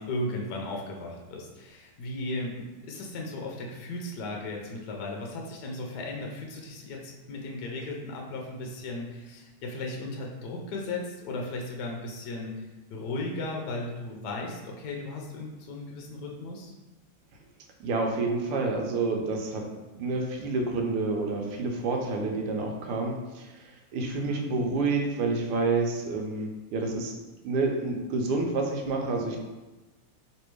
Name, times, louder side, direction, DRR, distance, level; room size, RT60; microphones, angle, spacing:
voice 1, 0.0-16.7 24.3-24.5, left 2 dB, 70° left, 0 dB, 1.0 m, -36 dB
voice 2, 17.8-19.7 19.9-27.1 27.4-29.4, right 3 dB, 85° right, 1 dB, 1.6 m, -29 dB
3.3 x 3.2 x 4.5 m, 1.1 s
omnidirectional pair, 2.4 m